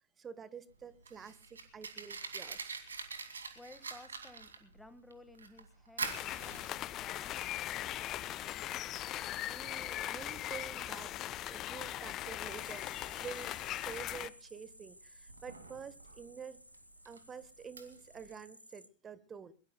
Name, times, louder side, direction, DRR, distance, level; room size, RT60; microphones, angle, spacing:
voice 1, 0.2-2.8 9.4-13.5 13.8-16.6 17.0-19.5, right 6 dB, 20° right, 1.3 m, -48 dB
Fire, 0.7-18.4, right 5 dB, 70° right, 2.4 m, -47 dB
voice 2, 3.5-7.4 8.0-8.8, left 2 dB, 5° left, 1.6 m, -57 dB
sound 1, 6.0-14.3, left 14 dB, 35° left, 0.7 m, -40 dB
sound 2, 12.4-18.9, equal, 90° left, 0.9 m, -57 dB
22.0 x 22.0 x 2.3 m
figure-of-eight pair, 90°, 0 cm